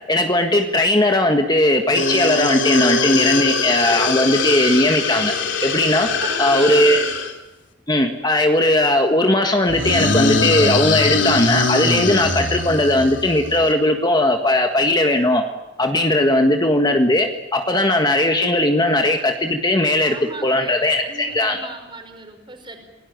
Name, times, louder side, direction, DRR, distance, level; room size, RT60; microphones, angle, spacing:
voice 1, 0.1-5.3 5.6-6.1 6.4-7.0 7.9-15.4 15.8-20.2 20.4-21.7, left 1 dB, 20° left, 4 dB, 1.6 m, -18 dB
sound 1, 1.9-7.3 9.7-13.7, left 4 dB, 75° left, 3.2 m, -22 dB
voice 2, 6.2-7.2 20.0-22.8, right 2 dB, 25° right, 5 dB, 5.2 m, -36 dB
28.5 x 19.0 x 9.5 m, 1.1 s
head